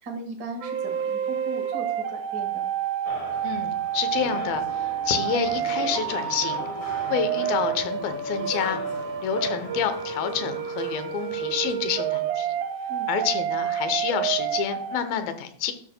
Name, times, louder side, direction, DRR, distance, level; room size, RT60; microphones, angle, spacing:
voice 1, 0.0-2.7 12.9-13.1, right 2 dB, 70° right, 2 dB, 0.9 m, -37 dB
sound 1, 0.6-15.0, right 9 dB, 85° right, 2.7 m, -29 dB
sound 2, 3.1-11.7, left 4 dB, 60° left, 1.7 m, -40 dB
voice 2, 3.4-6.7 7.1-8.8 9.2-12.6 13.1-15.7, left 8 dB, 80° left, 8 dB, 2.7 m, -28 dB
sound 3, 4.1-11.0, right 3 dB, ahead, 0.8 m, -45 dB
12.0 x 6.8 x 2.2 m, 0.62 s
omnidirectional pair, 4.2 m